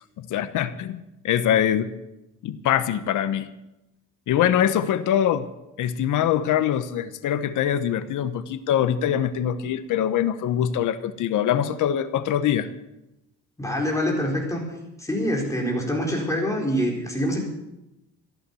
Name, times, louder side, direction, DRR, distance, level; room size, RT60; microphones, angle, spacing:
voice 1, 0.2-1.9 2.4-3.5 4.3-5.5 5.8-12.7, left 10 dB, 70° left, 13 dB, 1.0 m, -23 dB
voice 2, 13.6-14.7 15.0-17.4, equal, 10° left, -1 dB, 4.2 m, -25 dB
14.5 x 11.5 x 6.9 m, 0.92 s
cardioid pair, 115°, 31 cm